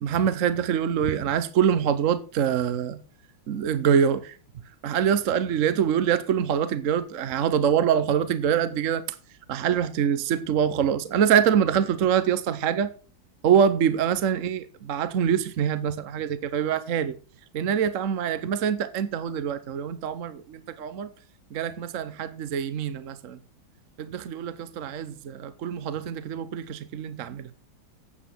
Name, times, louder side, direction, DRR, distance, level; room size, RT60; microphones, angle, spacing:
voice 1, 0.0-3.0 3.5-4.3 4.8-9.0 9.5-12.9 13.4-17.1 17.5-21.1 21.5-23.4 24.0-27.5, right 8 dB, 60° right, 0.8 m, -24 dB
9.7 x 8.3 x 6.1 m
omnidirectional pair, 2.2 m